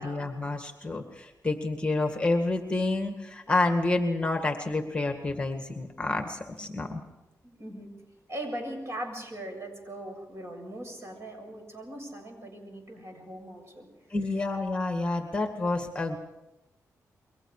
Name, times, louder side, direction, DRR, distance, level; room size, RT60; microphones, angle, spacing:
voice 1, 0.0-7.0 14.1-16.2, left 2 dB, 15° left, 4 dB, 2.0 m, -29 dB
voice 2, 7.4-7.9 8.3-13.9, right 1 dB, 45° right, 3 dB, 7.4 m, -40 dB
29.0 x 23.0 x 4.9 m, 0.97 s
wide cardioid pair, 110°, 6 cm